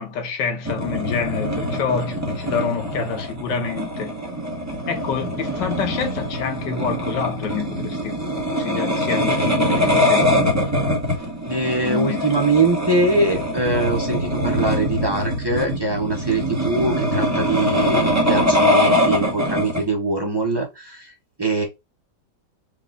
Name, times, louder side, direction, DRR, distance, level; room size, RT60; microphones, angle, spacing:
voice 1, 0.0-4.2 4.9-8.1 8.6-10.6 11.8-12.3, left 6 dB, 80° left, 1.6 m, -27 dB
sound 1, 0.7-19.8, equal, 10° right, 0.9 m, -23 dB
voice 2, 11.5-21.1 21.4-21.6, right 2 dB, 35° right, 0.4 m, -22 dB
4.7 x 2.3 x 3.8 m
omnidirectional pair, 1.9 m